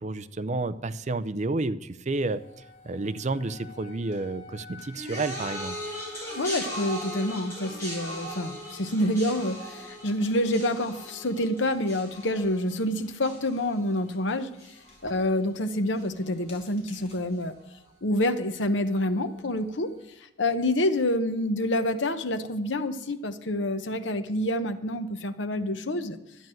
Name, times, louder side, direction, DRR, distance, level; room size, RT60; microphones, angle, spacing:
voice 1, 0.0-2.4 2.8-5.8, right 2 dB, 40° right, 13 dB, 0.6 m, -30 dB
sound 1, 2.1-20.0, left 2 dB, 35° left, 5.5 m, -54 dB
sound 2, 4.9-14.3 14.6-15.1 16.0-16.1, equal, 15° left, 6.8 m, -39 dB
voice 2, 6.4-14.5 15.0-17.6 18.0-19.9 20.4-26.2, left 1 dB, 80° left, 9 dB, 0.9 m, -27 dB
12.0 x 9.2 x 7.7 m, 0.91 s
head